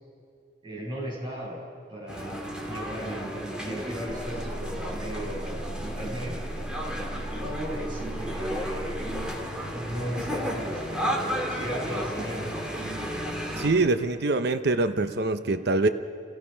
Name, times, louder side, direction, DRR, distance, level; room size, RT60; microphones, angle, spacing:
voice 1, 0.6-1.6 1.9-6.4 7.4-9.1 9.7-12.5, equal, 30° right, -5 dB, 6.9 m, -36 dB
sound 1, 2.1-13.7, equal, 5° right, 2.7 m, -33 dB
sound 2, 4.1-9.2, right 1 dB, 55° left, 3.4 m, -37 dB
voice 2, 13.6-15.9, right 2 dB, 65° right, 9 dB, 0.8 m, -24 dB
30.0 x 17.5 x 5.6 m, 2.3 s
head